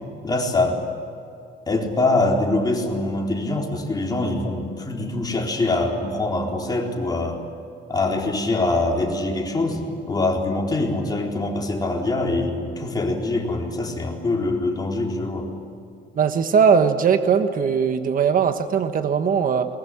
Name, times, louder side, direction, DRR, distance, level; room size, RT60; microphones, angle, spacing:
voice 1, 0.2-0.8 1.7-7.4 7.9-15.5, left 2 dB, 20° left, -1 dB, 4.1 m, -24 dB
voice 2, 16.2-19.7, right 6 dB, 50° right, 8 dB, 1.3 m, -19 dB
22.5 x 20.0 x 10.0 m, 2.7 s
cardioid pair, 130°, 19 cm